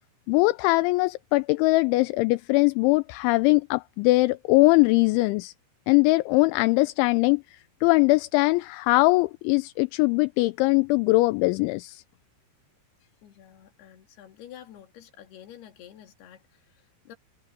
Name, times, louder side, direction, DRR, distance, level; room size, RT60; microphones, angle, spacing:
voice 1, 0.3-5.5 5.9-12.0, left 23 dB, 85° left, 2.9 m, -21 dB
voice 2, 13.2-17.2, left 11 dB, 60° left, 4.0 m, -49 dB
omnidirectional pair, 5.6 m